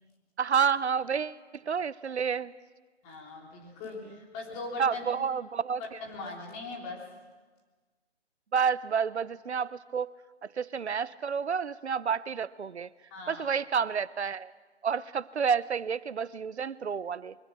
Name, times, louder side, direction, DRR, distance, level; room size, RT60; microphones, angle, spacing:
voice 1, 0.4-2.5 4.8-5.8 8.5-10.1 10.4-12.9 13.3-14.5 14.8-17.3, right 6 dB, 70° right, 19 dB, 0.8 m, -29 dB
voice 2, 3.0-5.0 6.0-7.0 13.1-13.5, left 3 dB, 20° left, -1 dB, 3.5 m, -40 dB
23.5 x 23.5 x 6.1 m, 1.4 s
figure-of-eight pair, 145°, 34 cm